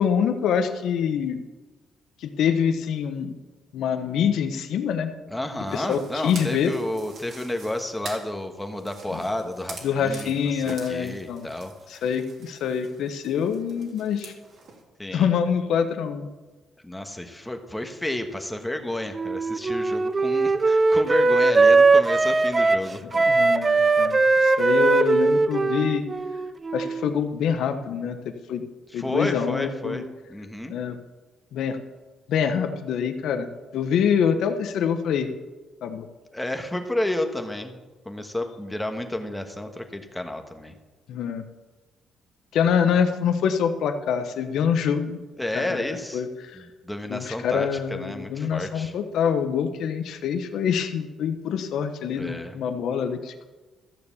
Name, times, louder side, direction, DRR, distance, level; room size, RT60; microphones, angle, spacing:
voice 1, 0.0-1.4 2.2-3.3 3.7-5.1 5.7-6.7 9.1-9.2 9.8-11.5 11.9-14.3 15.1-16.3 23.0-26.0 26.7-28.6 28.9-30.0 30.7-31.0 31.5-31.8 32.3-35.3 35.8-36.1 41.1-41.4 42.5-45.2 45.5-45.8 46.1-46.6 47.1-53.5, left 7 dB, 75° left, 8 dB, 1.1 m, -25 dB
voice 2, 5.3-12.0 15.0-15.3 16.8-23.1 28.9-30.7 36.3-37.8 38.0-40.8 45.4-46.2 46.5-48.9 52.1-52.6, left 1 dB, 10° left, 5 dB, 1.5 m, -31 dB
sound 1, 5.6-14.8, right 4 dB, 65° right, 2.9 m, -45 dB
Wind instrument woodwind instrument, 19.1-27.1, right 3 dB, 30° right, 0.6 m, -20 dB
13.5 x 6.8 x 7.1 m, 1.2 s
cardioid pair, 90°, 0 cm